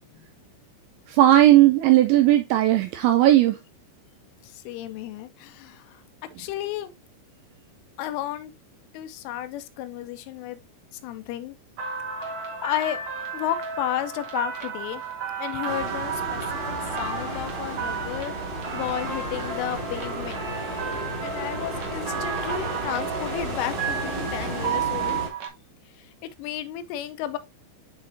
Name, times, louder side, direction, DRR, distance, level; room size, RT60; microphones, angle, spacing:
voice 1, 1.1-3.6, right 14 dB, 85° right, 2.6 m, -17 dB
voice 2, 4.4-6.0 6.4-6.9 8.0-8.5 8.9-10.6 11.0-11.5 12.6-13.0 13.3-15.0 15.4-16.4 17.0-18.3 18.7-20.4 21.2-25.2 26.2-27.4, left 12 dB, 80° left, 3.1 m, -32 dB
sound 1, 11.8-25.5, right 6 dB, 65° right, 1.7 m, -33 dB
sound 2, 15.6-25.3, right 1 dB, 40° right, 1.5 m, -33 dB
10.5 x 4.0 x 2.7 m
omnidirectional pair, 5.8 m